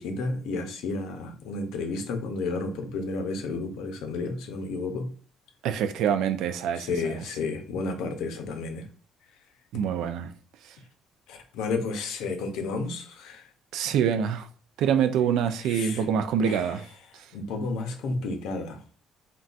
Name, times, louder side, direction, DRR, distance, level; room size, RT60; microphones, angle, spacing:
voice 1, 0.0-5.1 6.7-8.9 11.3-13.5 15.6-16.1 16.4-18.8, left 3 dB, 80° left, 0.6 m, -32 dB
voice 2, 5.6-6.9 9.7-10.3 13.7-14.5 14.8-16.8, right 8 dB, 75° right, 0.4 m, -25 dB
3.8 x 2.3 x 2.4 m
cardioid pair, 130°, 0 cm